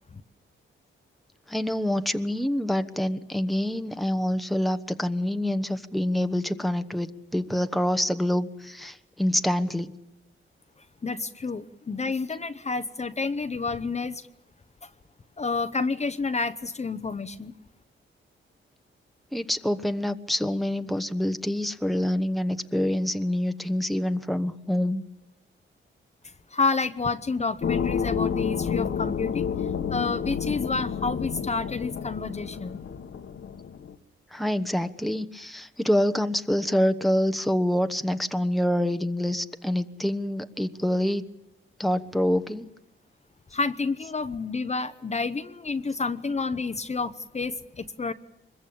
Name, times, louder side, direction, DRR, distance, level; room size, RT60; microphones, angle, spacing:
voice 1, 1.5-9.9 19.3-25.0 34.3-41.2 41.8-42.7, left 1 dB, ahead, 9 dB, 1.1 m, -26 dB
voice 2, 11.0-14.3 14.8-14.9 15.4-17.5 26.5-32.8 43.5-48.1, left 4 dB, 30° left, 10 dB, 0.9 m, -29 dB
sound 1, 27.6-34.0, left 7 dB, 70° left, 1.4 m, -30 dB
24.5 x 21.5 x 8.7 m, 0.89 s
cardioid pair, 100°, 21 cm